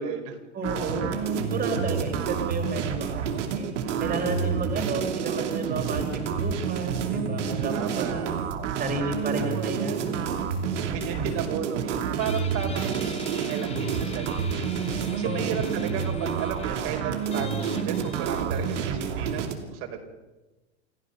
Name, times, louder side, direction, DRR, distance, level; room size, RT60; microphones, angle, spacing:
voice 1, 0.0-0.4 0.6-0.7 7.7-8.3 9.3-9.7 10.9-20.1, right 8 dB, 50° right, 3 dB, 4.5 m, -34 dB
voice 2, 0.5-8.3 8.8-10.3 11.1-11.4 15.2-15.6, right 3 dB, 25° right, 3 dB, 4.0 m, -32 dB
sound 1, 0.6-19.5, right 6 dB, 75° right, 3.0 m, -29 dB
Guitar, 12.2-19.4, left 4 dB, 15° left, 2.4 m, -43 dB
28.5 x 14.5 x 6.6 m, 1.1 s
hypercardioid pair, 105°, 36 cm